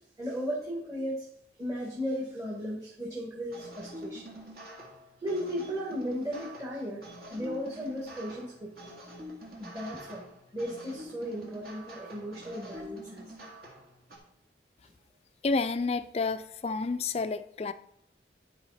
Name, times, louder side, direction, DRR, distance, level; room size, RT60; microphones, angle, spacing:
voice 1, 0.2-1.3 1.6-4.2 5.2-8.7 9.6-10.3 10.5-13.3, equal, 20° right, -4 dB, 1.5 m, -35 dB
sound 1, 3.5-14.2, equal, 55° right, 2.0 m, -46 dB
voice 2, 15.4-17.7, left 4 dB, 35° left, 12 dB, 0.3 m, -30 dB
12.0 x 4.7 x 4.1 m, 0.78 s
head